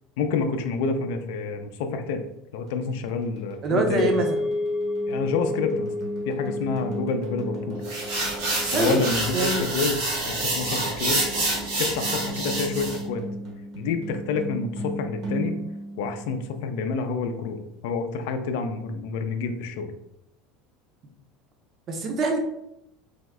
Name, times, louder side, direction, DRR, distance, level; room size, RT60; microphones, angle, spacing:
voice 1, 0.2-2.2 2.5-4.1 5.1-5.9 6.3-7.8 8.7-10.0 10.3-11.2 11.8-13.2 13.8-15.5 16.0-19.9, left 4 dB, 80° left, 7 dB, 0.4 m, -28 dB
sound 1, 2.7-16.9, right 1 dB, 55° right, 0.9 m, -38 dB
voice 2, 3.6-4.4 8.7-9.0 9.3-9.6 21.9-22.4, right 3 dB, 40° right, 3 dB, 0.6 m, -24 dB
sound 2, 4.0-12.3, left 2 dB, 35° left, 0.7 m, -32 dB
sound 3, 7.8-13.0, right 2 dB, 90° right, 1.3 m, -27 dB
3.4 x 2.0 x 3.5 m, 0.81 s
supercardioid pair, 130°, 0 cm